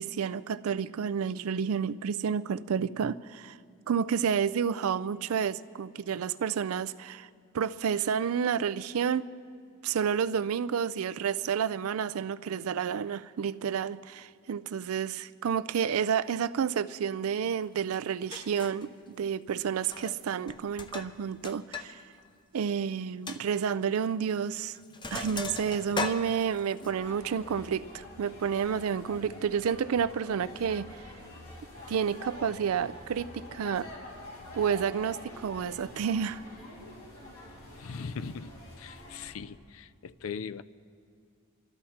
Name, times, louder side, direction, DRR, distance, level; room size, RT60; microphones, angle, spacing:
voice 1, 0.0-3.6 3.9-7.3 7.5-9.3 9.8-22.0 22.5-24.8 25.1-30.9 31.9-33.9 34.5-36.4, right 7 dB, 85° right, 0.4 m, -30 dB
Sink (filling or washing), 17.9-18.0 18.3-18.8 19.8-20.2 20.5-21.9 22.2-22.3 22.7-22.8 23.3-23.4 24.3-24.5 24.7-26.9, left 3 dB, 20° left, 0.6 m, -37 dB
sound 1, 26.8-39.3, left 1 dB, 90° left, 3.3 m, -47 dB
voice 2, 37.8-38.5 38.8-40.6, left 5 dB, 75° left, 0.4 m, -39 dB
25.0 x 13.0 x 4.3 m
head